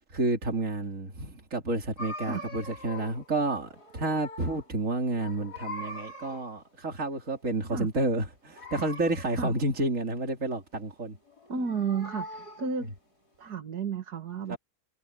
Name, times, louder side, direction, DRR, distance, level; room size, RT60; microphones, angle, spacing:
voice 1, 0.1-11.2 14.5-14.6, right 2 dB, 55° right, 3.7 m, -30 dB
sound 1, 2.0-3.3 3.6-4.7 5.0-6.6 8.5-9.7 11.3-12.8, left 1 dB, 80° left, 6.0 m, -42 dB
voice 2, 11.5-12.9 13.4-14.6, right 5 dB, 90° right, 2.5 m, -32 dB
omnidirectional pair, 1.6 m